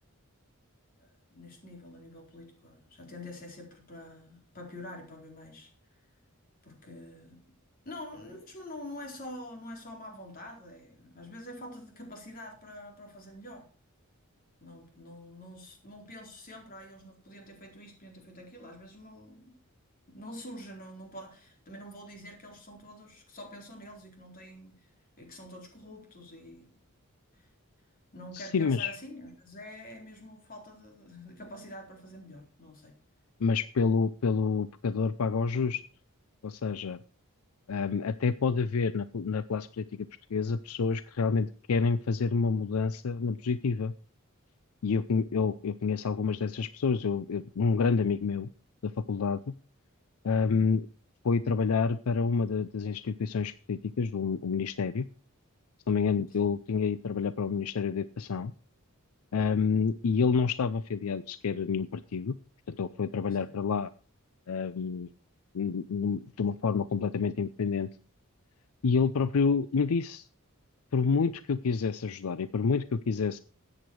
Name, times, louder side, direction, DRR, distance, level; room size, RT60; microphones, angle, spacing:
voice 1, 0.9-6.1 6.6-7.4 7.8-13.7 14.6-19.6 20.1-24.9 25.2-26.7 27.3-27.5 28.1-32.9 56.4-56.5 63.4-63.5, left 1 dB, 40° left, 1 dB, 4.2 m, -46 dB
voice 2, 28.3-28.9 33.4-35.8 36.4-37.0 37.7-43.9 44.8-48.5 48.8-49.4 50.2-50.8 51.2-55.1 55.9-58.5 59.3-62.4 62.7-63.9 64.5-65.1 65.5-67.9 68.8-70.3 70.9-73.4, left 5 dB, 80° left, 15 dB, 0.5 m, -28 dB
14.0 x 8.7 x 4.8 m, 0.38 s
head